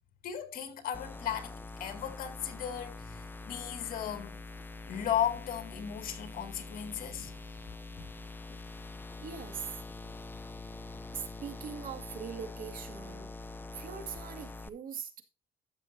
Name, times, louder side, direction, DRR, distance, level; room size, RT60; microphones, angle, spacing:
voice 1, 0.2-4.4 4.9-7.4 10.0-10.2, left 9 dB, 60° left, 2.2 m, -36 dB
sound 1, 0.9-14.7, left 3 dB, 10° left, 0.5 m, -45 dB
voice 2, 9.2-9.8 11.1-13.3 13.7-15.2, right 7 dB, 55° right, 2.0 m, -42 dB
13.0 x 7.0 x 2.6 m
cardioid pair, 110°, 17 cm